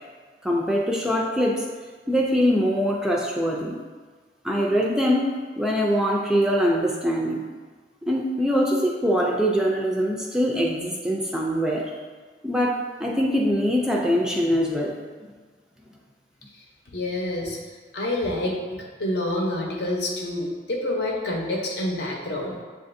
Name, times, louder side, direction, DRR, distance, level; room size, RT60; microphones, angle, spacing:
voice 1, 0.4-1.6 2.1-3.8 4.4-7.4 8.1-11.9 12.4-14.9, equal, 5° right, -2 dB, 0.3 m, -23 dB
voice 2, 16.9-17.6 17.9-22.6, left 1 dB, 65° left, -1 dB, 0.8 m, -27 dB
7.5 x 2.5 x 2.6 m, 1.5 s
head